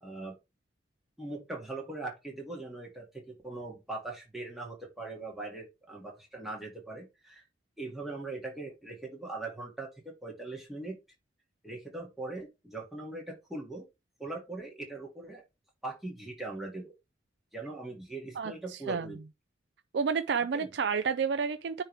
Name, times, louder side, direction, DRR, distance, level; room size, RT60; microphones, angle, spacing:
voice 1, 0.0-0.3 1.2-7.4 7.8-11.0 11.6-13.9 14.2-15.4 15.8-16.9 17.5-19.2 20.5-20.7, right 2 dB, ahead, 2.0 m, -40 dB
voice 2, 18.4-19.1 19.9-21.8, right 6 dB, 70° right, 0.4 m, -30 dB
9.6 x 3.2 x 3.3 m
head